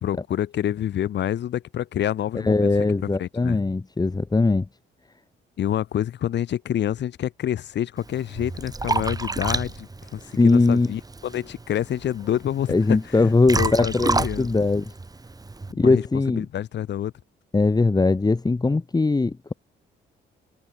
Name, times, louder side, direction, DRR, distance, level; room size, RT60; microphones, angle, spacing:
voice 1, 0.0-2.7 3.2-3.6 5.6-13.9 14.2-14.5 15.7-16.0 16.4-17.1, left 11 dB, 60° left, 1.3 m, -27 dB
voice 2, 2.3-4.6 10.4-10.9 12.7-14.9 15.8-16.5 17.5-19.5, left 3 dB, 20° left, 1.8 m, -20 dB
Liquid, 8.0-15.7, right 3 dB, 20° right, 2.0 m, -30 dB
cardioid pair, 90°, 20 cm